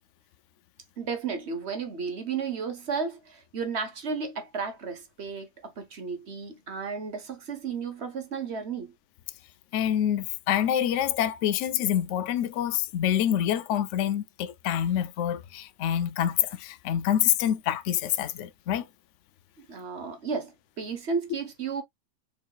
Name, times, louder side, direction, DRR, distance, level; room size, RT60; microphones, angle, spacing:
voice 1, 1.0-8.9 19.6-21.8, right 5 dB, 50° right, 1.3 m, -33 dB
voice 2, 9.7-18.8, left 10 dB, 65° left, 0.8 m, -26 dB
6.9 x 3.4 x 2.3 m
omnidirectional pair, 1.6 m